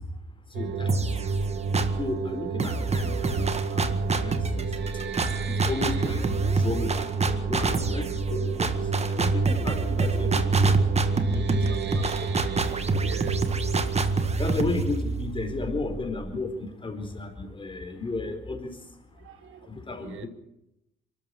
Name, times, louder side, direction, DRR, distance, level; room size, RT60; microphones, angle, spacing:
voice 1, 0.5-1.3 2.0-4.7 5.5-6.2 6.5-10.8 11.3-12.3 14.4-18.8 19.7-20.3, left 3 dB, 25° left, 7 dB, 4.4 m, -34 dB
sound 1, 0.5-16.0, right 4 dB, 65° right, 2.3 m, -29 dB
sound 2, 0.9-2.1 2.6-16.3, right 3 dB, 30° right, 1.8 m, -29 dB
voice 2, 10.6-11.2 11.7-11.9 13.0-13.6 19.2-20.3, right 11 dB, 80° right, 12 dB, 1.5 m, -45 dB
23.0 x 13.0 x 9.7 m, 0.86 s
cardioid pair, 90°, 20 cm